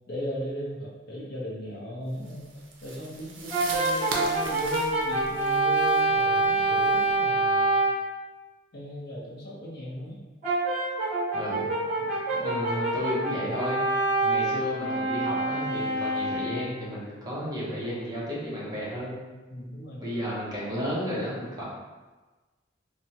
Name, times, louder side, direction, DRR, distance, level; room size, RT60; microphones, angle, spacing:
voice 1, 0.1-2.5 2.8-7.8 8.7-10.2 19.5-20.2, equal, 55° left, -4 dB, 0.7 m, -37 dB
sound 1, 2.2-7.1, right 3 dB, 80° right, 0.5 m, -39 dB
Brass instrument, 3.5-8.1 10.4-16.8, right 2 dB, 40° right, 1.3 m, -26 dB
voice 2, 11.3-11.7 12.0-13.8 14.2-19.2 20.0-21.6, equal, 20° right, -7 dB, 0.8 m, -33 dB
3.3 x 2.1 x 2.7 m, 1.2 s
head